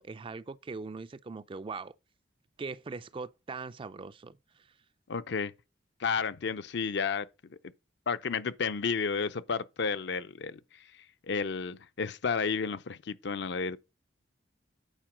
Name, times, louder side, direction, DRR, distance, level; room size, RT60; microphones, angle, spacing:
voice 1, 0.0-1.9 2.6-4.4, right 4 dB, 30° right, 0.4 m, -40 dB
voice 2, 5.1-5.5 6.0-7.6 8.1-13.8, left 5 dB, 65° left, 0.6 m, -32 dB
8.9 x 4.4 x 6.0 m
head